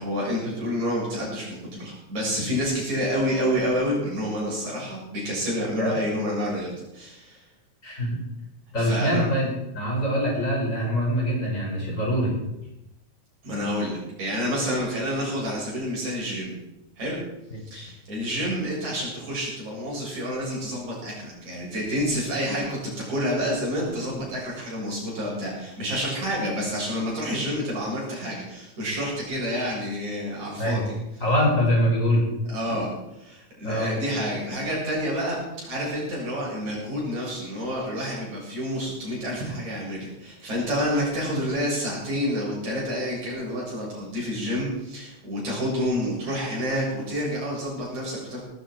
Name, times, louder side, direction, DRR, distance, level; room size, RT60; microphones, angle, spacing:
voice 1, 0.0-7.4 8.8-9.3 13.4-16.5 17.0-17.2 17.7-30.8 32.5-32.9 33.2-48.4, equal, 75° right, -4 dB, 8.7 m, -28 dB
voice 2, 7.8-8.2 8.7-12.4 17.7-17.9 30.6-30.8 31.2-32.2 33.6-33.9, equal, 25° left, -3 dB, 6.2 m, -24 dB
18.5 x 14.5 x 4.7 m, 0.90 s
omnidirectional pair, 3.4 m